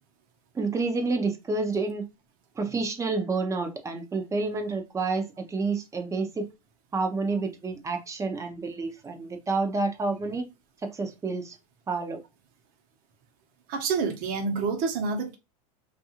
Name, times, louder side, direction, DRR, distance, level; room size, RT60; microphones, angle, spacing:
voice 1, 0.5-2.1 2.6-6.5 6.9-10.5 10.8-11.6 11.9-12.2, right 3 dB, 15° right, 0.6 m, -29 dB
voice 2, 13.7-15.3, right 4 dB, 50° right, 0.9 m, -28 dB
2.6 x 2.4 x 2.8 m
supercardioid pair, 120°, 19 cm